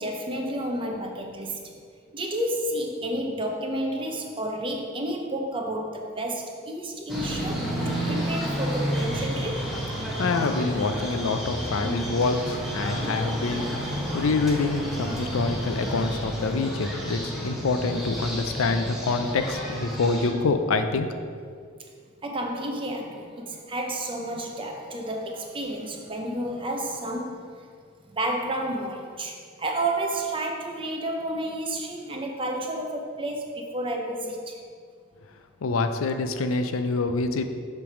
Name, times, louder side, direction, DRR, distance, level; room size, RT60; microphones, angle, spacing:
voice 1, 0.0-1.7 2.1-9.7 12.5-12.7 22.2-27.4 28.1-34.6, right 1 dB, 25° right, 2 dB, 0.6 m, -31 dB
sound 1, 7.1-20.3, equal, ahead, 1.0 m, -31 dB
voice 2, 10.2-13.6 14.1-21.1 35.6-37.5, left 3 dB, 85° left, 8 dB, 0.5 m, -26 dB
7.0 x 3.3 x 5.9 m, 2.1 s
head